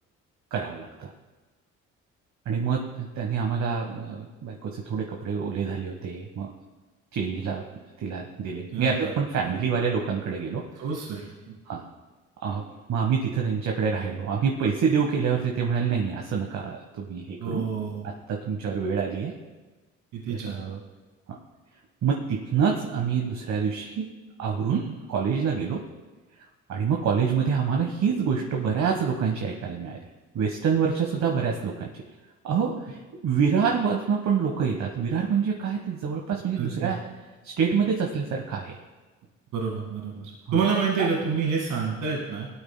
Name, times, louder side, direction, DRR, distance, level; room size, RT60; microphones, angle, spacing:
voice 1, 0.5-1.1 2.4-6.5 7.1-7.6 8.0-10.7 11.7-11.8 12.4-12.6 12.9-17.6 18.0-19.3 20.3-20.8 22.0-24.1 24.4-25.8 26.7-30.0 30.3-31.9 32.4-37.0 37.4-38.8 40.5-40.6 41.0-41.1, right 6 dB, 70° right, 1 dB, 1.3 m, -26 dB
voice 2, 8.7-9.1 9.5-9.6 10.8-11.2 17.4-18.1 20.1-20.6 24.7-24.8 36.6-36.9 39.5-42.5, right 5 dB, 90° right, -3 dB, 2.1 m, -28 dB
17.5 x 13.0 x 2.2 m, 1.2 s
cardioid pair, 90°, 30 cm